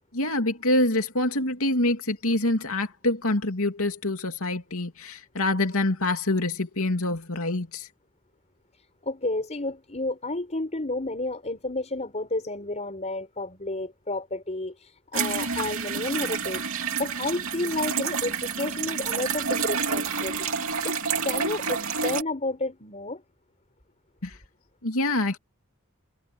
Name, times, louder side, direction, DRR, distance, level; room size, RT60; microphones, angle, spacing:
voice 1, 0.1-7.9 24.2-24.4 24.8-25.4, left 2 dB, 75° left, 2.8 m, -26 dB
voice 2, 9.0-16.6 16.9-20.5 20.8-23.2, left 2 dB, 30° left, 5.2 m, -31 dB
sound 1, 15.1-22.2, right 5 dB, 65° right, 3.2 m, -29 dB
head